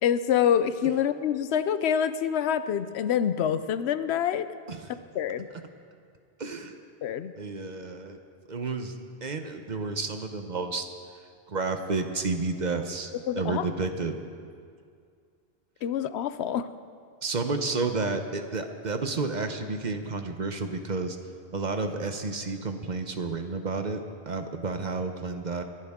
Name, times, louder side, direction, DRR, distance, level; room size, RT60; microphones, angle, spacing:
voice 1, 0.0-4.5 5.1-5.5 7.0-7.3 13.3-13.7 15.8-16.7, left 9 dB, 85° left, 13 dB, 0.9 m, -26 dB
voice 2, 6.4-6.7 7.4-8.2 8.5-8.9 9.2-10.8 11.5-14.2 17.2-21.2 21.5-25.6, right 3 dB, 45° right, 7 dB, 0.9 m, -31 dB
23.5 x 11.0 x 3.6 m, 2.2 s
omnidirectional pair, 1.1 m